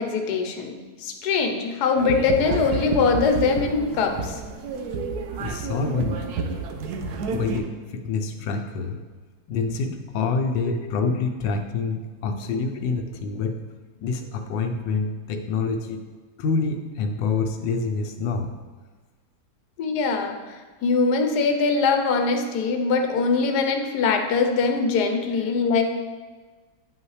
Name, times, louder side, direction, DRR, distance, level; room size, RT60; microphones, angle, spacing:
voice 1, 0.0-4.4 10.7-10.8 19.8-26.0, left 4 dB, 70° left, 5 dB, 1.3 m, -22 dB
sound 1, 2.0-7.6, right 4 dB, 70° right, 1.1 m, -30 dB
voice 2, 5.4-6.2 7.3-9.0 9.5-13.6 14.0-16.0 16.4-18.5, left 4 dB, 90° left, 4 dB, 1.3 m, -27 dB
9.4 x 5.5 x 3.2 m, 1.3 s
omnidirectional pair, 1.9 m